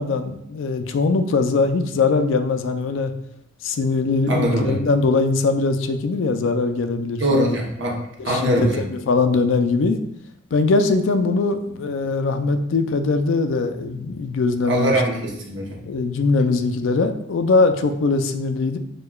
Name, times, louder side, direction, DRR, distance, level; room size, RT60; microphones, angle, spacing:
voice 1, 0.0-3.1 3.6-7.6 8.2-10.0 10.5-15.0 15.9-18.8, left 3 dB, 75° left, 8 dB, 0.4 m, -21 dB
voice 2, 4.3-4.8 7.2-8.0 8.2-8.8 14.7-15.7, right 1 dB, 65° right, -1 dB, 0.8 m, -22 dB
6.4 x 2.2 x 2.2 m, 0.77 s
head